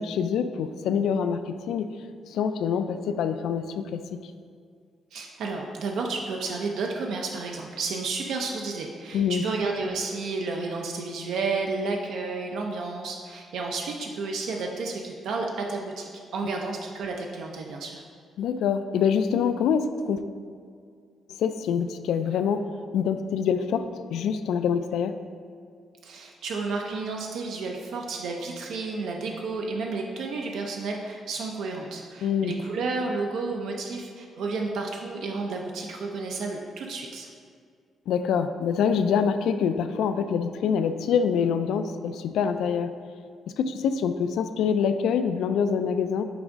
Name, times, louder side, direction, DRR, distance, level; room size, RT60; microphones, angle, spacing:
voice 1, 0.0-1.9 2.3-4.0 9.1-9.4 18.4-20.2 21.4-22.7 22.9-25.2 32.2-32.5 38.1-42.9 43.6-46.2, left 7 dB, 85° left, 10 dB, 0.3 m, -25 dB
voice 2, 5.1-18.0 26.0-37.3, right 3 dB, 70° right, 1 dB, 0.5 m, -31 dB
6.0 x 3.5 x 5.0 m, 2.2 s
cardioid pair, 175°, 0 cm